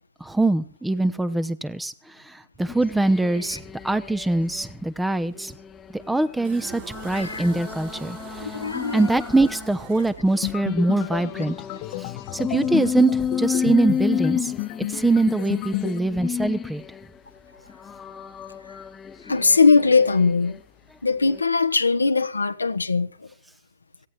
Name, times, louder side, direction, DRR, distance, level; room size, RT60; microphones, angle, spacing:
voice 1, 0.2-1.9 2.2-5.5 5.9-8.5 8.9-11.6 12.0-14.5 14.9-16.8, right 2 dB, 5° right, 1.0 m, -23 dB
sound 1, 2.7-4.7 5.2-9.7 10.2-17.2 17.7-20.6 21.1-21.4, left 7 dB, 15° left, 0.8 m, -32 dB
sound 2, 6.4-10.7, right 9 dB, 45° right, 5.9 m, -42 dB
voice 2, 7.1-7.5 8.4-9.1 19.2-20.6 21.0-23.1, left 4 dB, 85° left, 1.3 m, -20 dB
sound 3, 10.4-16.0, left 20 dB, 40° left, 1.1 m, -31 dB
17.0 x 16.0 x 4.4 m
figure-of-eight pair, 115°, 0 cm